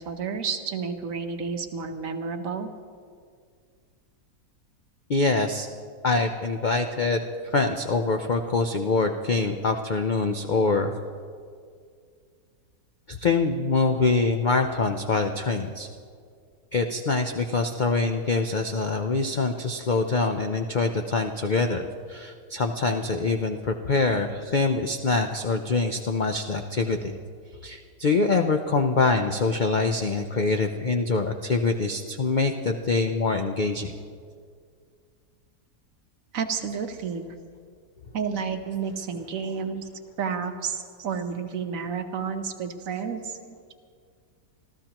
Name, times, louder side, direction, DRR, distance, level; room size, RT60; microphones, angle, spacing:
voice 1, 0.0-2.7 36.3-37.3 38.1-39.9 40.2-43.7, right 6 dB, 60° right, 7 dB, 1.2 m, -31 dB
voice 2, 5.1-5.7 6.0-10.9 13.1-15.9 16.7-21.8 22.1-27.2 27.6-33.9, left 3 dB, 80° left, 5 dB, 0.4 m, -24 dB
26.5 x 14.0 x 3.0 m, 2.1 s
omnidirectional pair, 1.7 m